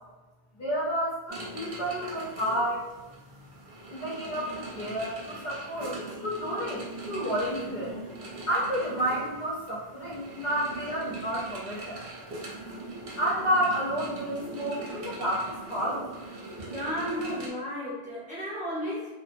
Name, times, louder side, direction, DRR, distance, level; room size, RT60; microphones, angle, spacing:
voice 1, 0.6-2.8 3.9-7.9 8.5-12.0 13.2-16.1, equal, 55° left, -7 dB, 0.7 m, -30 dB
sound 1, 1.3-17.5, right 2 dB, 65° right, 0.8 m, -41 dB
voice 2, 16.5-19.1, equal, 10° right, -9 dB, 0.8 m, -34 dB
2.4 x 2.2 x 2.5 m, 1.1 s
omnidirectional pair, 1.1 m